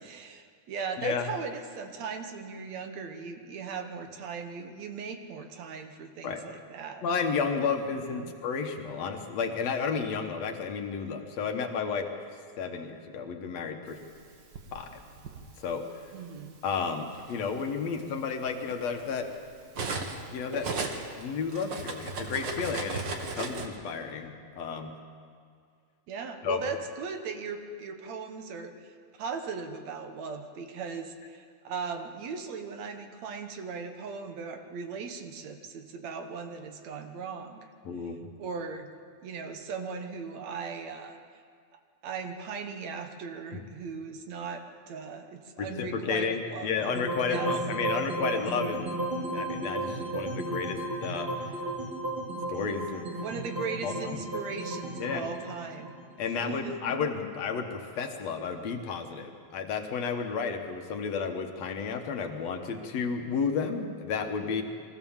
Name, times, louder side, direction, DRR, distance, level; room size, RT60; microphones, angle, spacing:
voice 1, 0.0-7.0 8.1-8.3 16.1-16.6 26.1-28.9 29.2-37.7 38.4-38.9 39.2-41.2 42.0-46.7 47.3-47.5 48.2-48.5 53.2-56.0 56.4-57.0, right 5 dB, 70° right, 6 dB, 2.4 m, -38 dB
voice 2, 1.0-1.3 6.2-6.4 7.0-12.1 12.6-14.0 14.7-14.9 15.6-16.1 16.6-19.3 20.3-20.7 21.2-23.1 23.3-25.0 26.4-26.7 37.9-38.2 43.5-43.6 45.6-48.9 49.3-51.5 52.5-53.1 53.8-54.2 55.0-55.2 56.2-64.6, left 5 dB, 65° left, 4 dB, 2.4 m, -32 dB
Cutlery silverware, 14.1-15.4 16.4-16.6 17.0-20.2 20.5-23.7, right 3 dB, 45° right, 1.8 m, -36 dB
sound 1, 46.8-57.0, right 2 dB, 20° right, 3.1 m, -34 dB
23.5 x 16.0 x 7.3 m, 2.1 s
omnidirectional pair, 3.3 m